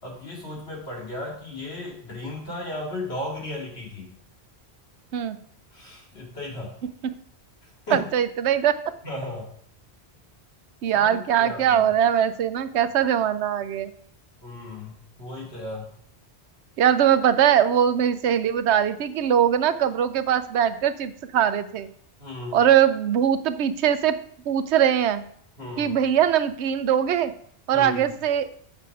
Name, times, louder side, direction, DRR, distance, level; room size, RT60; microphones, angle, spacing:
voice 1, 0.0-4.2 5.7-6.8 7.6-8.1 9.0-9.5 10.9-11.9 14.4-15.9 22.2-22.6 25.6-26.0 27.7-28.1, left 2 dB, 75° left, -3 dB, 2.7 m, -35 dB
voice 2, 7.9-8.8 10.8-13.9 16.8-21.9 22.5-24.2 24.5-25.2 25.8-27.3 27.7-28.5, right 9 dB, 85° right, 12 dB, 0.9 m, -21 dB
7.9 x 5.7 x 4.7 m, 0.62 s
omnidirectional pair, 1.1 m